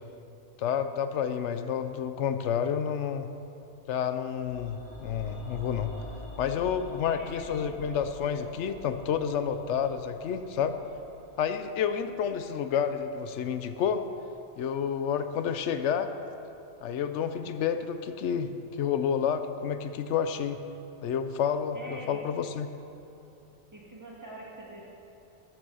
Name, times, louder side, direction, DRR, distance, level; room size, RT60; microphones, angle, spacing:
voice 1, 0.6-3.3 3.9-5.9 6.4-10.8 11.4-14.0 14.6-16.1 16.8-18.5 18.8-20.6 21.0-22.7, left 8 dB, 80° left, 10 dB, 0.9 m, -29 dB
sound 1, 4.3-14.4 14.7-14.8, equal, 60° left, 3.2 m, -47 dB
voice 2, 7.1-7.5 21.7-22.2 23.7-24.9, right 1 dB, 15° right, -5 dB, 1.9 m, -44 dB
13.5 x 6.0 x 5.5 m, 2.8 s
omnidirectional pair, 1.2 m